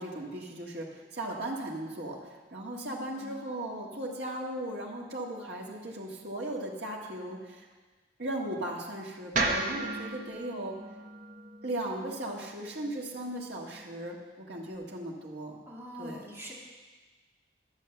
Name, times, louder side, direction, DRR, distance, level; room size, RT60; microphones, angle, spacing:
voice 1, 0.0-7.7 8.2-10.8 11.6-15.6 16.0-16.3, right 1 dB, 65° right, -2 dB, 1.8 m, -37 dB
voice 2, 2.8-3.4 15.7-16.5, equal, 15° right, -5 dB, 2.2 m, -44 dB
sound 1, 9.3-13.5, right 2 dB, 45° right, 1.2 m, -35 dB
11.5 x 7.4 x 6.7 m, 1.3 s
head